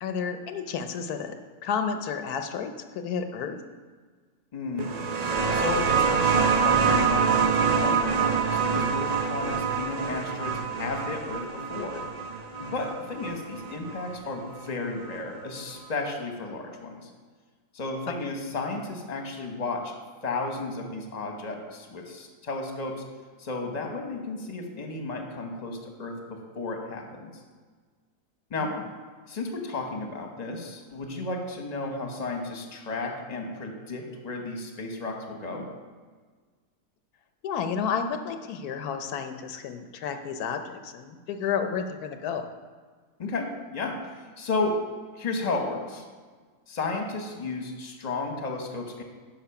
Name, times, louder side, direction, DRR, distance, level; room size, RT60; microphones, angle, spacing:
voice 1, 0.0-1.4 1.6-3.6 28.6-28.7 37.4-42.5, left 6 dB, 85° left, 7 dB, 1.2 m, -31 dB
voice 2, 4.5-12.0 12.6-17.1 17.7-19.9 20.2-23.0 23.4-27.4 28.5-28.7 29.3-35.6 43.2-44.7 45.1-46.0 46.7-49.0, left 3 dB, 30° left, 3 dB, 1.1 m, -33 dB
sound 1, 4.8-14.1 15.2-15.3, right 6 dB, 80° right, 0.3 m, -25 dB
10.0 x 5.6 x 5.8 m, 1.5 s
omnidirectional pair, 1.6 m